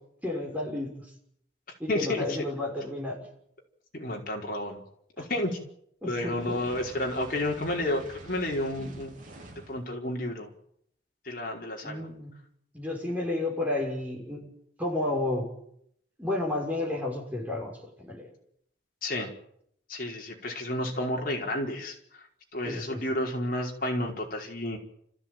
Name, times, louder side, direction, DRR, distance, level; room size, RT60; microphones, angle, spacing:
voice 1, 0.2-0.9 1.8-3.2 5.2-5.4 6.0-6.6 8.8-8.9 11.8-12.3 12.7-14.5 14.8-15.5 16.2-18.3 22.6-23.0, left 2 dB, 10° right, -1 dB, 6.7 m, -32 dB
voice 2, 1.9-2.4 3.9-4.8 5.2-5.6 6.0-9.1 9.7-10.5 11.2-12.1 19.0-19.3 19.9-21.9 22.5-24.8, left 1 dB, 50° left, 0 dB, 5.1 m, -31 dB
Fire, 6.2-9.8, right 1 dB, 45° right, 3.7 m, -47 dB
29.5 x 15.0 x 9.3 m, 0.71 s
head